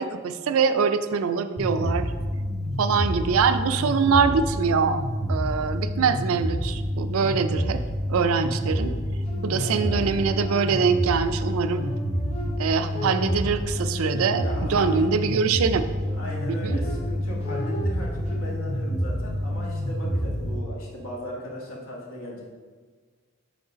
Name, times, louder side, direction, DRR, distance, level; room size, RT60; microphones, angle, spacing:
voice 1, 0.0-2.1 2.8-5.0 5.3-7.8 8.1-8.9 9.4-11.9 12.6-15.9 16.5-16.8, right 5 dB, 85° right, 10 dB, 0.4 m, -24 dB
sound 1, 1.6-20.6, equal, ahead, 0.3 m, -28 dB
sound 2, 8.8-11.1 11.5-15.5 16.0-18.5, left 1 dB, 30° left, 0.7 m, -39 dB
voice 2, 9.5-10.0 14.4-15.3 16.1-22.4, left 1 dB, 85° left, -3 dB, 1.4 m, -37 dB
5.2 x 3.7 x 5.0 m, 1.5 s
head